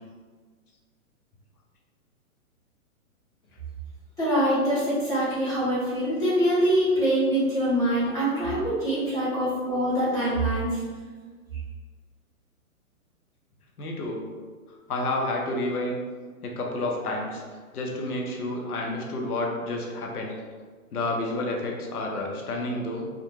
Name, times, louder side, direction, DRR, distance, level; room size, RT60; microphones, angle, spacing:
voice 1, 4.2-10.8, right 1 dB, 10° left, -11 dB, 0.5 m, -24 dB
voice 2, 13.8-14.2 14.9-16.0 16.4-17.4 17.7-20.4 20.9-23.1, left 2 dB, 85° left, 0 dB, 0.8 m, -30 dB
2.4 x 2.2 x 3.0 m, 1.5 s
hypercardioid pair, 135°, 44 cm